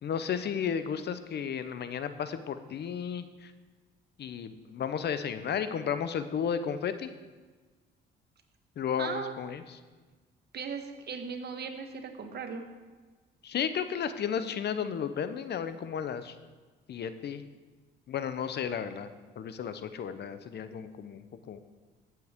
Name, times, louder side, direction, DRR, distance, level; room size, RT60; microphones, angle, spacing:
voice 1, 0.0-3.5 4.2-7.1 8.8-9.8 13.4-16.3 16.9-17.4 18.1-19.1 19.4-21.6, left 7 dB, 60° left, 11 dB, 0.7 m, -33 dB
voice 2, 9.0-9.4 10.5-12.6, right 5 dB, 55° right, 6 dB, 1.3 m, -37 dB
14.5 x 7.7 x 3.6 m, 1.4 s
cardioid pair, 90°, 20 cm